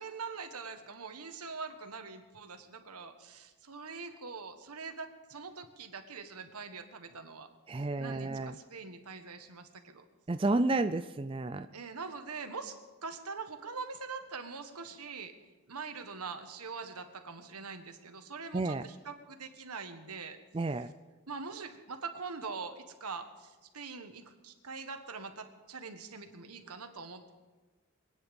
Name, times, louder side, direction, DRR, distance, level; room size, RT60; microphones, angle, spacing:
voice 1, 0.0-7.5 7.9-10.0 11.7-12.7 13.0-15.3 15.7-20.4 21.3-27.3, right 4 dB, 90° right, 7 dB, 1.5 m, -43 dB
voice 2, 7.7-8.5 10.3-11.7 18.5-18.8 20.5-20.9, right 2 dB, 25° right, 9 dB, 0.4 m, -31 dB
24.0 x 9.7 x 5.3 m, 1.2 s
head